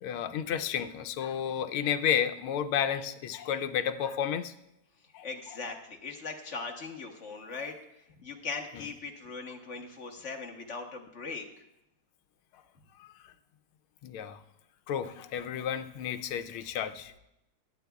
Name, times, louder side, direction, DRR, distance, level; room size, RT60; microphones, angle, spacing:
voice 1, 0.0-4.5 5.1-5.2 14.0-14.4 14.9-17.1, left 9 dB, 90° left, 9 dB, 1.5 m, -31 dB
voice 2, 5.2-7.7 8.2-11.4, left 4 dB, 40° left, 2 dB, 1.3 m, -39 dB
20.0 x 9.0 x 2.3 m, 0.87 s
omnidirectional pair, 2.3 m